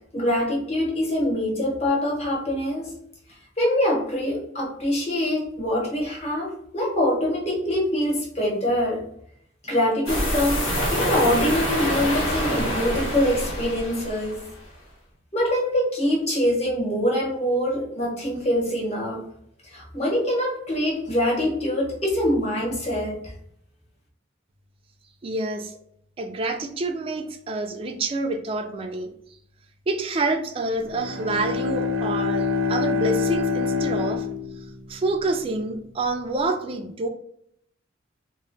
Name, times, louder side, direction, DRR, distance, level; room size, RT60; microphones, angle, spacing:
voice 1, 0.1-2.9 3.6-9.1 9.6-14.4 15.3-19.2 19.6-23.3, left 1 dB, 30° left, -3 dB, 0.9 m, -24 dB
sound 1, 10.1-14.5, equal, 75° left, 1.1 m, -26 dB
voice 2, 25.2-25.7 26.2-29.1 29.9-34.3 34.9-37.1, right 2 dB, 30° right, 4 dB, 0.3 m, -27 dB
Bowed string instrument, 30.8-35.2, left 5 dB, 85° right, 0.5 m, -26 dB
2.1 x 2.1 x 3.7 m, 0.70 s
head